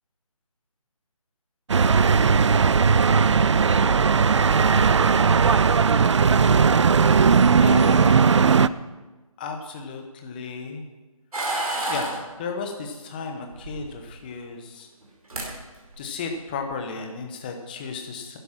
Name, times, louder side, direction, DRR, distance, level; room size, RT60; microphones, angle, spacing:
sound 1, 1.7-8.7, right 5 dB, 55° right, 0.4 m, -18 dB
voice 1, 7.5-8.8 9.4-10.8 11.9-12.1 12.4-14.9 16.0-18.4, left 4 dB, 15° left, 4 dB, 0.9 m, -34 dB
sound 2, 11.3-12.2 13.5-14.2 15.0-15.1 15.3-15.5 15.9-16.2, right 2 dB, 80° right, 4.9 m, -29 dB
11.5 x 11.0 x 6.0 m, 1.2 s
figure-of-eight pair, 165°, 18 cm